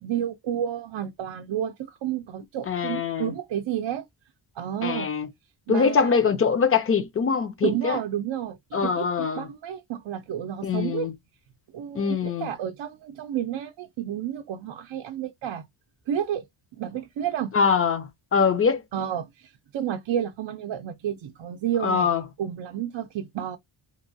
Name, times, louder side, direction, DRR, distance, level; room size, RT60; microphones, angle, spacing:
voice 1, 0.0-4.0 4.6-5.1 5.7-6.2 7.6-11.1 11.7-15.7 16.1-16.5 16.8-17.5 18.9-22.1 22.4-23.6, right 10 dB, 65° right, 0.5 m, -31 dB
voice 2, 2.7-3.3 4.8-5.3 5.7-8.0 8.7-9.5 10.6-11.1 11.9-12.5 17.5-18.8 21.8-22.2, left 6 dB, 30° left, 0.5 m, -23 dB
3.0 x 2.2 x 2.6 m
wide cardioid pair, 125°, 47 cm